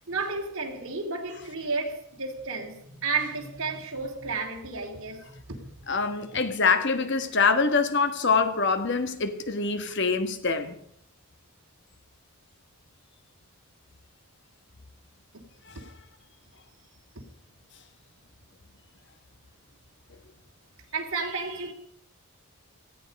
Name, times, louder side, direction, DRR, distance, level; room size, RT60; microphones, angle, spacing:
voice 1, 0.1-5.6 20.9-21.7, right 4 dB, 60° right, 2.8 m, -32 dB
voice 2, 5.9-10.7 15.7-15.8, left 4 dB, 50° left, 1.3 m, -25 dB
18.0 x 14.5 x 5.2 m
head